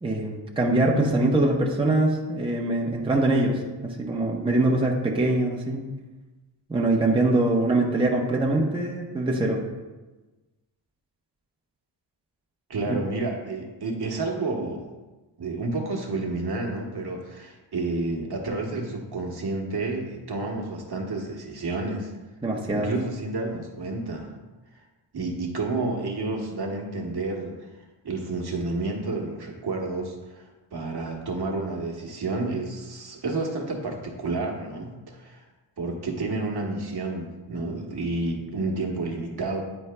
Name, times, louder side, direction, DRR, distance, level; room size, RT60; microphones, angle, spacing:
voice 1, 0.0-5.9 6.7-9.6 12.9-13.0 22.4-22.9, right 2 dB, 10° right, -1 dB, 0.8 m, -23 dB
voice 2, 12.7-14.9 15.4-22.1 22.7-24.3 25.1-27.7 28.0-35.4 35.8-39.6, right 2 dB, 55° right, 0 dB, 1.2 m, -30 dB
9.6 x 4.5 x 2.2 m, 1.2 s
cardioid pair, 70°, 48 cm